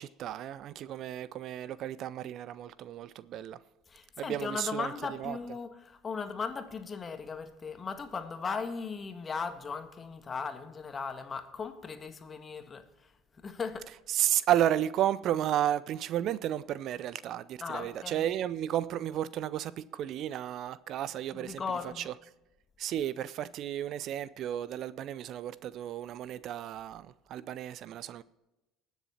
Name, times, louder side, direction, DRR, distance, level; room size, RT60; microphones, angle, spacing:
voice 1, 0.0-3.6 4.2-4.9 5.2-5.4 14.1-21.6 22.0-22.1 22.8-28.2, right 11 dB, 55° right, 0.5 m, -32 dB
voice 2, 3.9-13.9 17.6-18.3 21.3-22.1, left 5 dB, 30° left, 1.6 m, -38 dB
20.0 x 7.3 x 4.3 m
hypercardioid pair, 75°, 0 cm